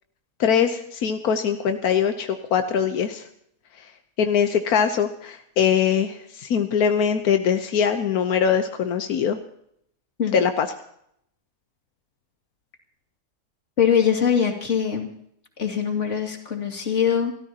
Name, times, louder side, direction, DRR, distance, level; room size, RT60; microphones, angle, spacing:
voice 1, 0.4-3.2 4.2-9.4 10.3-10.7, left 7 dB, 90° left, 7 dB, 1.4 m, -22 dB
voice 2, 13.8-15.1 15.6-17.3, left 8 dB, 55° left, 3 dB, 2.7 m, -22 dB
29.5 x 14.0 x 2.9 m, 0.71 s
omnidirectional pair, 1.5 m